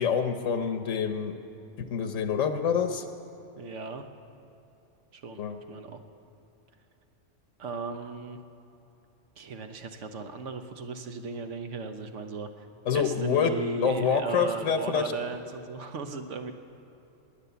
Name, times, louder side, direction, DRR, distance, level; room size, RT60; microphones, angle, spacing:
voice 1, 0.0-1.3 1.8-3.0 5.4-5.6 12.9-13.5 13.8-15.0, left 7 dB, 90° left, 7 dB, 1.2 m, -26 dB
voice 2, 3.6-4.1 5.1-6.0 7.6-8.4 9.4-12.7 12.9-16.5, right 4 dB, 80° right, 7 dB, 1.3 m, -36 dB
20.5 x 8.9 x 7.0 m, 2.8 s
omnidirectional pair, 1.3 m